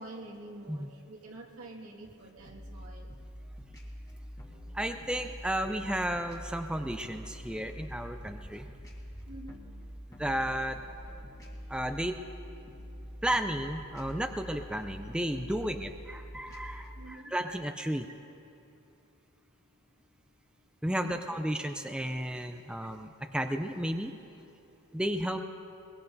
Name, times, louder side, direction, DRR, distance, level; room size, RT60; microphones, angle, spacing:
voice 1, 0.0-3.1 9.3-9.6 17.0-17.3 21.1-21.4, right 2 dB, 80° right, -1 dB, 2.0 m, -47 dB
sound 1, 2.4-17.0, equal, 15° left, 1.7 m, -45 dB
voice 2, 4.7-8.7 10.2-10.8 11.7-12.2 13.2-18.1 20.8-24.1 24.9-25.4, right 1 dB, 5° right, 6 dB, 0.4 m, -33 dB
22.5 x 22.0 x 2.7 m, 2.7 s
head